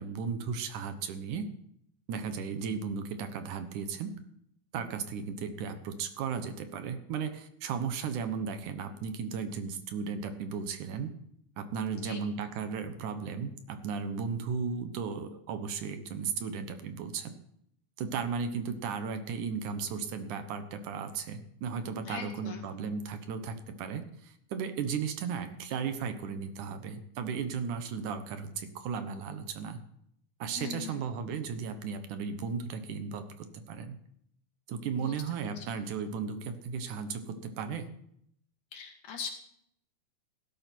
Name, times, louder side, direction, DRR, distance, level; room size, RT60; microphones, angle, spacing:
voice 1, 0.0-1.5 2.1-4.1 4.7-11.1 11.6-17.3 18.0-29.8 30.4-34.0 34.7-37.9, right 6 dB, 75° right, 9 dB, 2.6 m, -35 dB
voice 2, 22.1-22.7 30.6-31.0 34.9-35.2 35.6-35.7 38.7-39.3, left 6 dB, 70° left, 3 dB, 3.6 m, -40 dB
16.5 x 12.5 x 4.5 m, 0.71 s
omnidirectional pair, 3.7 m